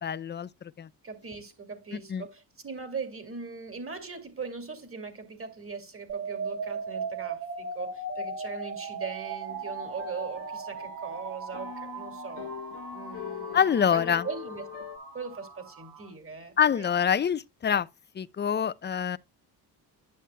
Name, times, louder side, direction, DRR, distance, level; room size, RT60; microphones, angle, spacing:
voice 1, 0.0-0.5 0.8-0.9 2.1-2.2 13.5-14.2 16.6-17.9 18.2-19.2, left 8 dB, 25° left, 0.4 m, -25 dB
voice 2, 1.0-12.6 12.9-14.7 15.1-16.9, right 5 dB, 35° right, 2.3 m, -40 dB
sound 1, 6.1-16.1, right 4 dB, 55° right, 3.4 m, -38 dB
sound 2, 9.5-15.0, left 10 dB, 85° left, 1.4 m, -43 dB
10.0 x 7.2 x 2.2 m
cardioid pair, 80°, 40 cm